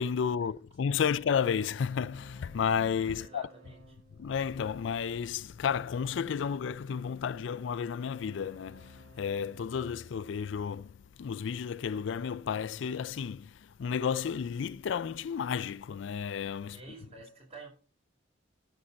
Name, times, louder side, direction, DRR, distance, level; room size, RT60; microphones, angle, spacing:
voice 1, 0.0-3.4 4.2-16.8, left 7 dB, 70° left, 0.4 m, -32 dB
sound 1, 1.2-5.6 7.9-11.2, right 2 dB, 65° right, 3.9 m, -59 dB
voice 2, 3.2-4.0 16.7-17.7, right 3 dB, 35° right, 4.6 m, -49 dB
12.5 x 6.5 x 4.1 m
head